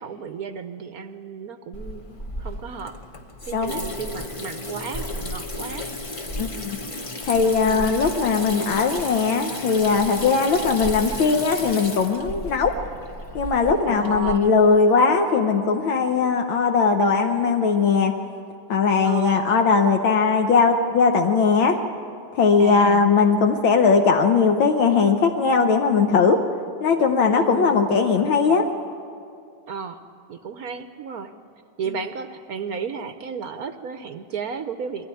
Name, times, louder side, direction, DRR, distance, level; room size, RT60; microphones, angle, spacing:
voice 1, 0.0-3.0 3.5-5.9 7.6-7.9 13.9-14.5 19.0-19.6 22.6-23.1 27.3-27.9 29.7-30.0 30.3-31.3 31.8-35.1, right 6 dB, 60° right, 8 dB, 1.0 m, -33 dB
Water tap faucet / Sink (filling or washing), 1.7-14.4, left 1 dB, 45° left, 0.4 m, -33 dB
voice 2, 3.5-3.8 6.4-6.8 7.3-12.7 13.4-18.2 18.7-21.8 22.3-26.4 26.8-28.7, left 5 dB, 75° left, 4 dB, 1.7 m, -19 dB
22.0 x 16.0 x 9.8 m, 2.4 s
omnidirectional pair, 2.2 m